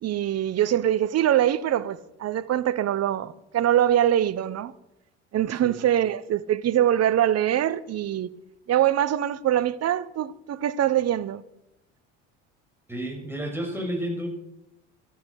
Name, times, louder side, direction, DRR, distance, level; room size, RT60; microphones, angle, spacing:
voice 1, 0.0-4.7 5.3-8.3 8.7-11.4, right 11 dB, 45° right, 0.9 m, -23 dB
voice 2, 12.9-14.3, equal, 5° right, 6.7 m, -31 dB
13.5 x 13.0 x 6.5 m
hypercardioid pair, 65°, 36 cm